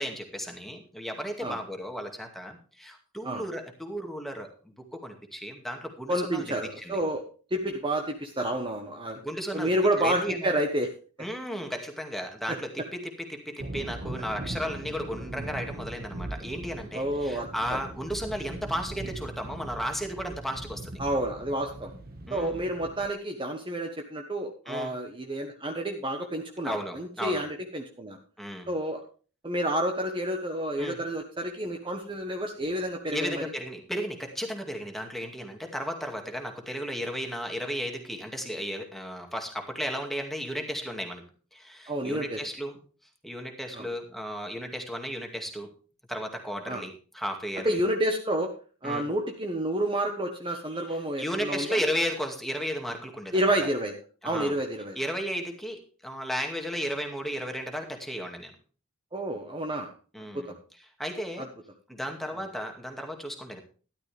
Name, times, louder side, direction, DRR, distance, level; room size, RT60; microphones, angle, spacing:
voice 1, 0.0-7.0 9.2-10.5 11.2-20.9 22.3-22.6 24.7-24.9 26.6-27.4 28.4-28.7 30.8-31.0 33.1-41.2 41.5-42.8 43.2-45.7 46.1-47.8 48.8-49.1 51.2-53.6 54.2-54.5 55.0-58.5 60.1-60.5 61.0-61.5 61.9-63.6, equal, ahead, 3 dB, 2.2 m, -34 dB
voice 2, 6.1-7.2 7.5-9.2 9.5-10.9 12.5-12.6 16.9-17.8 21.0-21.9 22.3-28.2 28.7-29.0 29.4-33.4 41.9-42.4 43.7-43.9 46.7-46.8 47.6-48.5 48.8-51.8 53.3-54.0 54.2-55.0 59.1-59.9 60.3-60.6 61.4-61.5, right 1 dB, 25° right, 3 dB, 1.3 m, -29 dB
sound 1, 13.6-23.1, right 1 dB, 45° right, 1.6 m, -40 dB
13.0 x 12.0 x 3.5 m, 0.37 s
head